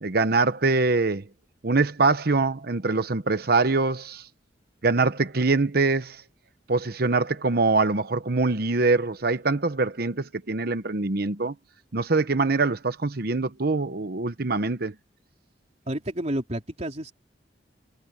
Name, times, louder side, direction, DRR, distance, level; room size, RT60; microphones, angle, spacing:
voice 1, 0.0-1.2 1.6-4.2 4.8-6.2 6.7-11.5 11.9-14.9, right 3 dB, 60° right, 1.0 m, -24 dB
voice 2, 15.9-17.1, right 1 dB, 40° right, 3.8 m, -30 dB
head